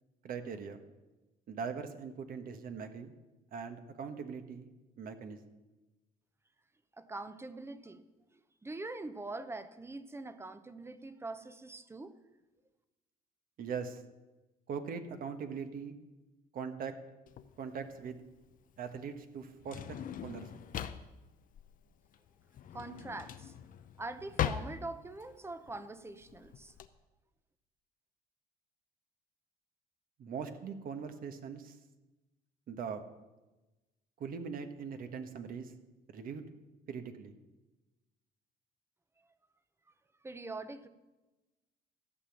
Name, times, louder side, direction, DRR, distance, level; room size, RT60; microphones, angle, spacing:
voice 1, 0.2-0.8 1.5-3.1 3.5-4.7 5.0-5.4 13.6-14.0 14.7-15.9 16.5-16.9 17.6-18.2 18.8-20.5 30.2-31.7 32.7-33.0 34.2-35.7 36.1-36.4 36.9-37.3, right 6 dB, 60° right, 7 dB, 1.4 m, -41 dB
voice 2, 7.0-8.0 8.3-12.1 22.7-23.5 24.0-26.7 40.2-40.9, right 2 dB, 15° right, 12 dB, 0.9 m, -43 dB
Drawer open or close, 17.3-26.9, left 10 dB, 55° left, 0.8 m, -41 dB
14.0 x 6.0 x 8.7 m, 1.1 s
cardioid pair, 110°, 17 cm